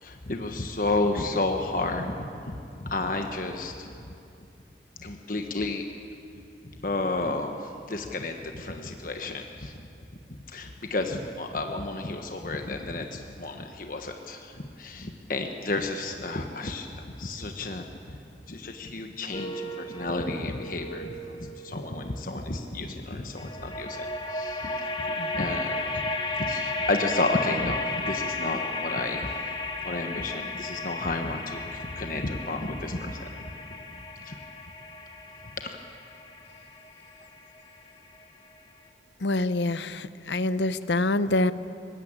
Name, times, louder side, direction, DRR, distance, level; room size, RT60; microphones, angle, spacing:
voice 1, 0.0-3.9 5.0-5.8 6.8-9.7 10.5-16.9 17.2-17.9 18.5-24.8 25.3-26.0 26.4-29.3 29.8-33.2 34.2-34.4, left 2 dB, 50° left, 4 dB, 1.3 m, -31 dB
sound 1, 19.3-22.6 23.4-38.2, left 2 dB, 25° left, 1.7 m, -34 dB
voice 2, 39.2-41.5, left 2 dB, 85° left, 14 dB, 0.8 m, -26 dB
24.0 x 20.5 x 8.9 m, 2.6 s
head